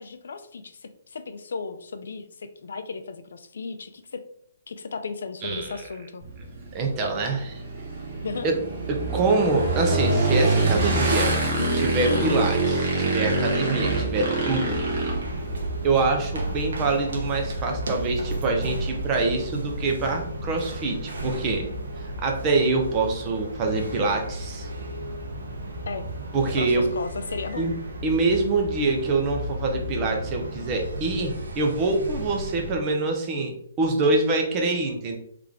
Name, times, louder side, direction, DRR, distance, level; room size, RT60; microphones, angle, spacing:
voice 1, 0.0-4.2 4.7-6.2 8.1-8.5 11.5-12.3 25.9-26.0 26.6-27.7, left 4 dB, 75° left, 9 dB, 0.5 m, -35 dB
voice 2, 5.4-5.9 6.7-7.6 8.4-8.6 8.9-11.3 11.7-14.8 15.8-21.7 22.0-24.7 26.3-26.9 27.6-27.7 28.0-35.2, right 3 dB, 20° right, 2 dB, 0.7 m, -25 dB
Motorcycle / Engine, 6.2-15.9, right 2 dB, 45° right, 1.2 m, -25 dB
sound 1, 14.3-32.8, right 1 dB, 85° right, 1.1 m, -33 dB
3.7 x 3.3 x 3.6 m, 0.68 s
hypercardioid pair, 165°, 0 cm